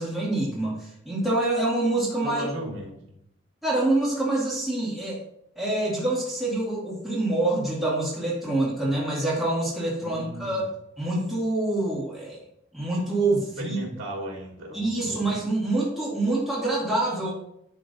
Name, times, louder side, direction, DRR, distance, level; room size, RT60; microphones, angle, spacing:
voice 1, 0.0-2.5 3.6-5.2 5.6-10.7 11.0-12.4 12.7-13.8 14.7-17.3, right 2 dB, ahead, -8 dB, 2.1 m, -26 dB
voice 2, 2.2-3.2 10.0-10.7 13.6-15.3, right 1 dB, 70° right, -2 dB, 2.2 m, -36 dB
11.0 x 3.7 x 2.6 m, 0.77 s
head